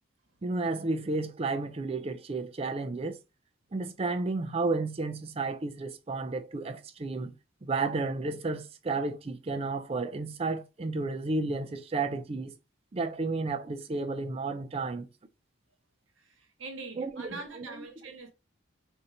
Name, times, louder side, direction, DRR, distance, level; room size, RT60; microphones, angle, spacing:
voice 1, 0.4-3.2 3.7-7.3 7.6-12.5 12.9-15.1 17.0-17.7, right 3 dB, 30° right, 0.4 m, -32 dB
voice 2, 16.2-18.3, right 3 dB, 75° right, 1.1 m, -43 dB
4.6 x 2.6 x 2.7 m
head